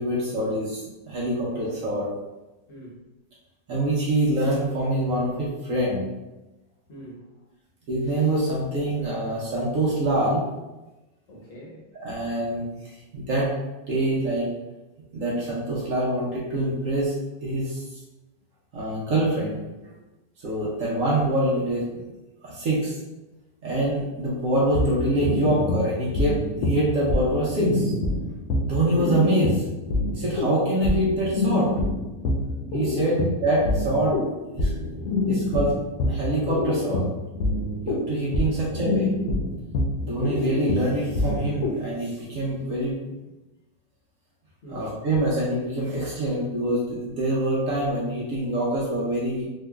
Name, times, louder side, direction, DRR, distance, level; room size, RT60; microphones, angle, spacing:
voice 1, 0.0-2.1 3.7-6.1 7.9-10.4 11.9-13.5 13.9-14.5 15.1-17.1 17.4-17.8 18.7-19.6 20.4-21.9 22.4-23.0 23.6-27.9 28.6-29.6 30.1-31.7 32.7-34.2 34.5-34.7 35.3-35.7 36.0-37.0 37.8-39.1 40.0-43.0 44.7-49.5, right 1 dB, 60° right, -5 dB, 0.9 m, -25 dB
voice 2, 2.7-3.0 6.9-7.3 11.3-11.8 33.0-33.3 38.5-39.0 44.6-44.9, right 2 dB, 55° left, -5 dB, 1.1 m, -42 dB
sound 1, 24.7-41.8, left 2 dB, 80° left, 0.7 m, -26 dB
3.8 x 2.6 x 2.3 m, 1.1 s
omnidirectional pair, 1.9 m